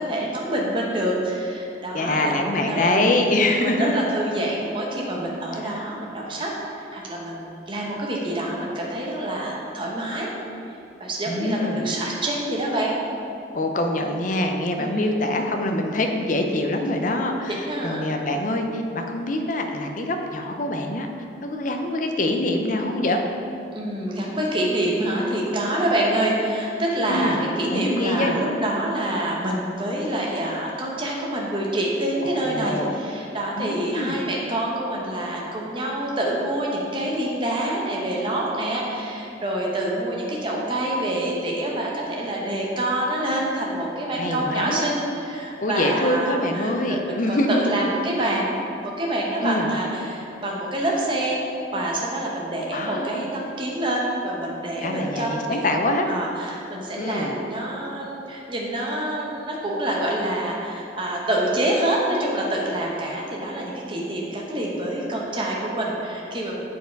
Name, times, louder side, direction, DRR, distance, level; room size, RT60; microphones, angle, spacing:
voice 1, 0.0-3.0 3.6-10.3 11.0-12.9 14.8-15.1 17.7-18.1 23.7-51.4 51.7-55.7 56.1-66.6, right 1 dB, 25° right, -3 dB, 1.0 m, -26 dB
voice 2, 1.9-3.9 5.6-5.9 11.3-11.9 13.5-21.1 21.4-23.2 27.1-27.4 27.7-28.4 32.2-33.0 33.6-34.2 44.1-44.8 45.6-47.7 48.2-48.3 49.4-49.7 52.7-53.3 54.8-56.1 57.0-57.4, left 1 dB, 45° left, 4 dB, 0.6 m, -24 dB
7.3 x 4.6 x 4.6 m, 2.7 s
head